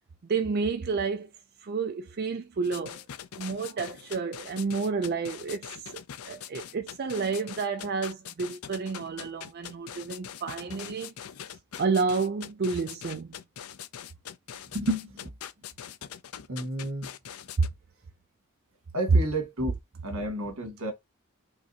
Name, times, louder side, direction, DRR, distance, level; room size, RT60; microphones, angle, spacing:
voice 1, 0.2-1.3 1.6-3.0 3.4-11.1 11.5-13.3 17.6-17.7, right 4 dB, 45° right, 0.4 m, -30 dB
sound 1, 2.6-17.7, left 9 dB, 85° left, 0.5 m, -42 dB
voice 2, 14.7-15.3 16.5-17.1 18.9-19.7 20.0-20.9, right 1 dB, 70° right, 1.7 m, -31 dB
5.0 x 3.2 x 2.8 m
head